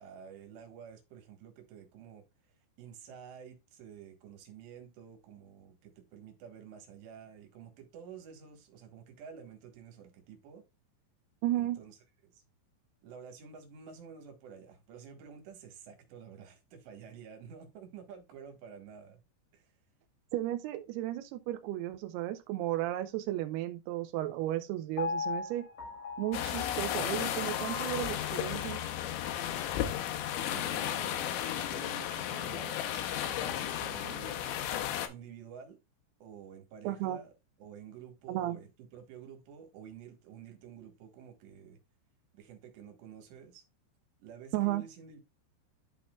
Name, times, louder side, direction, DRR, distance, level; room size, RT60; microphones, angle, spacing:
voice 1, 0.0-2.2 2.8-10.6 11.5-12.4 13.0-19.2 19.5-19.7 30.5-34.6 35.1-35.8 36.2-37.3 37.6-41.8 42.3-43.6 44.2-45.2, right 7 dB, 70° right, 3.5 m, -50 dB
voice 2, 11.4-11.8 20.3-25.7 26.2-28.8 36.8-37.2 38.3-38.6 44.5-44.8, right 14 dB, 90° right, 2.3 m, -34 dB
Piano, 25.0-29.1 29.6-29.7, left 5 dB, 50° left, 2.0 m, -39 dB
sound 1, 26.3-35.1, left 11 dB, 80° left, 3.1 m, -34 dB
11.5 x 4.3 x 2.3 m
omnidirectional pair, 5.4 m